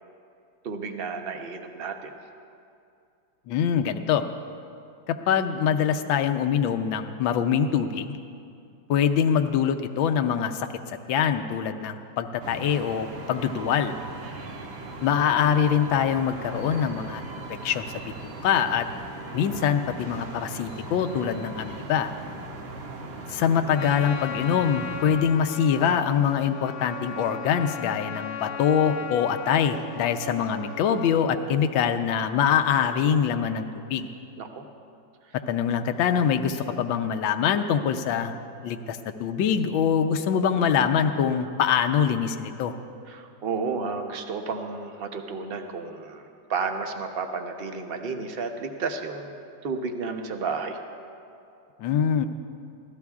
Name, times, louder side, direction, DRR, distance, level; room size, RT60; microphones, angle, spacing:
voice 1, 0.6-2.1 19.3-19.6 34.4-34.6 36.7-36.8 43.1-50.8, right 4 dB, 50° right, 5 dB, 0.7 m, -32 dB
voice 2, 3.5-4.3 5.1-8.2 8.9-13.9 15.0-17.2 17.6-18.9 19.3-22.1 23.3-34.1 35.5-38.3 38.6-42.7 51.8-52.3, left 8 dB, 85° left, 7 dB, 1.4 m, -24 dB
sound 1, 12.4-25.2, right 2 dB, 75° right, 2.0 m, -39 dB
Trumpet, 23.7-31.3, left 5 dB, 60° left, 1.1 m, -37 dB
25.0 x 16.5 x 2.4 m, 2.5 s
omnidirectional pair, 2.1 m